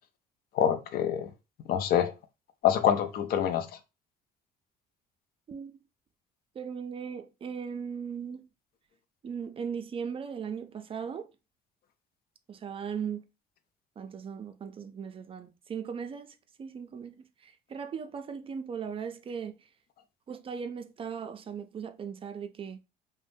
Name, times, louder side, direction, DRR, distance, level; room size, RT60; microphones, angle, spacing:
voice 1, 0.5-1.3 1.7-2.1 2.6-3.7, left 9 dB, 65° left, 0.5 m, -25 dB
voice 2, 5.5-5.8 6.6-8.4 9.2-11.3 12.5-13.2 14.0-19.6 20.3-22.8, right 7 dB, 35° right, 0.4 m, -38 dB
2.6 x 2.1 x 3.4 m
cardioid pair, 110°, 17 cm